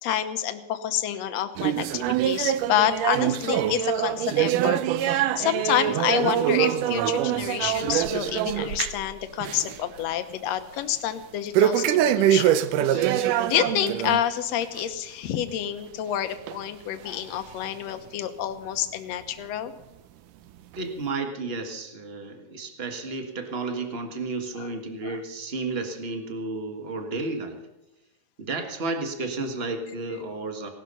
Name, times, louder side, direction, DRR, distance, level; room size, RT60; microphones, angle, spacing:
voice 1, 0.0-12.6 12.9-19.7 24.6-24.7 25.0-25.2, left 11 dB, 65° left, 9 dB, 1.9 m, -28 dB
sound 1, 1.6-9.1 9.4-9.8 10.1-10.2 11.5-14.2 14.6-14.8 15.5-15.6 16.5-16.6 17.4-17.5, right 11 dB, 80° right, 2.2 m, -24 dB
voice 2, 20.7-27.6 28.4-30.7, right 3 dB, 45° right, 5 dB, 0.8 m, -32 dB
18.0 x 12.5 x 5.5 m, 0.97 s
omnidirectional pair, 3.8 m